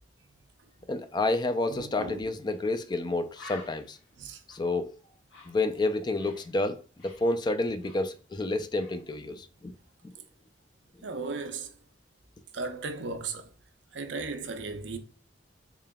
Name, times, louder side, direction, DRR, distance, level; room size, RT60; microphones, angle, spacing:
voice 1, 0.9-4.0 4.5-4.9 5.5-6.8 7.0-9.7, left 2 dB, 25° left, 0.3 m, -29 dB
voice 2, 1.7-2.2 4.2-4.4 11.0-11.7 12.5-13.5 13.9-15.0, right 3 dB, 75° right, 0.6 m, -36 dB
Bird, 2.5-2.6 2.9-3.0 3.3-6.5 6.8-8.5 8.8-9.1, left 3 dB, 80° left, 1.4 m, -51 dB
3.7 x 3.7 x 2.2 m
head